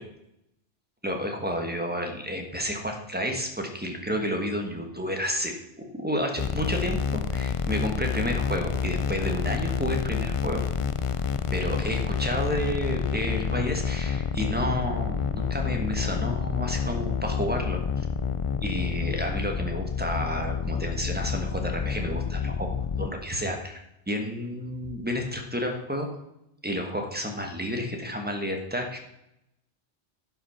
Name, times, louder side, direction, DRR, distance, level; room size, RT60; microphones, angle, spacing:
voice 1, 1.0-5.5 6.0-10.6 11.5-18.1 18.6-22.7 23.0-23.8 24.1-26.1 26.6-29.0, equal, 10° right, 3 dB, 1.3 m, -31 dB
sound 1, 6.4-23.1, left 6 dB, 60° left, 0.3 m, -29 dB
11.0 x 5.8 x 5.8 m, 0.85 s
omnidirectional pair, 1.2 m